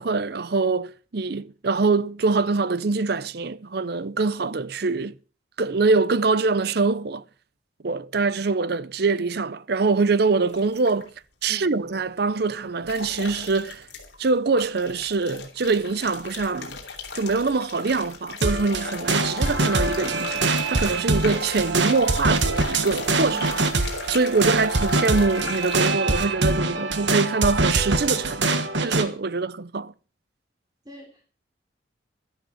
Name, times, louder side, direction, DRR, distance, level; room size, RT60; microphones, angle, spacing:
voice 1, 0.0-5.1 5.6-7.2 7.8-11.1 11.4-13.9 14.2-16.8 17.1-20.4 20.7-23.5 24.1-29.9, right 4 dB, 55° right, 0.6 m, -24 dB
sound 1, 10.5-11.1 12.9-14.3 14.6-25.9, left 5 dB, 60° left, 3.6 m, -38 dB
voice 2, 11.5-11.8 23.3-23.6 26.7-26.9 30.8-31.2, equal, 20° right, 3.0 m, -42 dB
sound 2, 18.4-29.1, right 3 dB, 70° right, 1.5 m, -24 dB
13.0 x 12.0 x 5.6 m
head